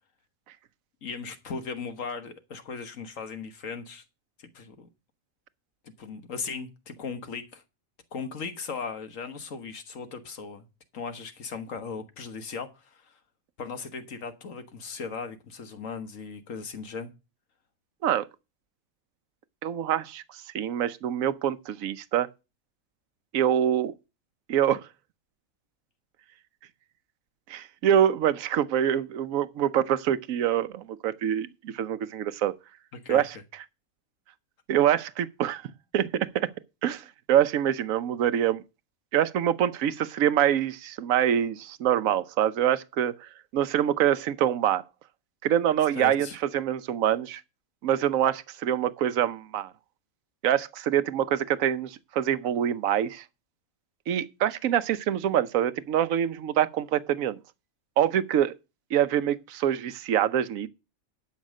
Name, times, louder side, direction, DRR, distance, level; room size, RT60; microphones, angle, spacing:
voice 1, 1.0-4.0 4.4-4.9 5.8-7.6 8.1-10.7 10.9-13.2 13.6-17.1 32.9-33.2 46.0-46.3, left 5 dB, 70° left, 1.6 m, -37 dB
voice 2, 19.6-22.3 23.3-23.9 24.5-24.9 27.5-32.5 33.1-33.4 34.7-35.7 35.9-36.5 36.8-38.6 39.1-44.8 45.4-47.4 47.8-49.7 50.4-53.2 54.1-57.4 58.0-58.5 58.9-60.7, right 10 dB, 75° right, 1.1 m, -25 dB
11.5 x 5.8 x 6.3 m
omnidirectional pair, 1.4 m